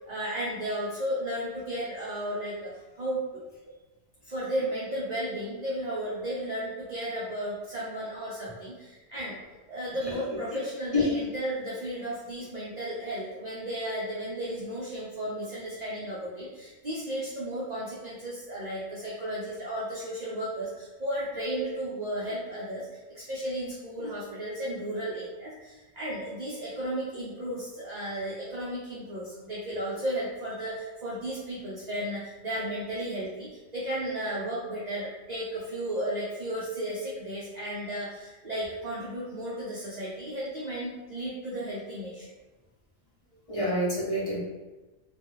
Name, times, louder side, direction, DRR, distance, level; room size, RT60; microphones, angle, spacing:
voice 1, 0.0-3.4 4.2-9.4 9.7-42.3, right 1 dB, 55° right, -6 dB, 0.5 m, -34 dB
voice 2, 43.5-44.4, left 1 dB, 30° left, -10 dB, 0.8 m, -27 dB
2.3 x 2.2 x 3.0 m, 1.1 s
omnidirectional pair, 1.2 m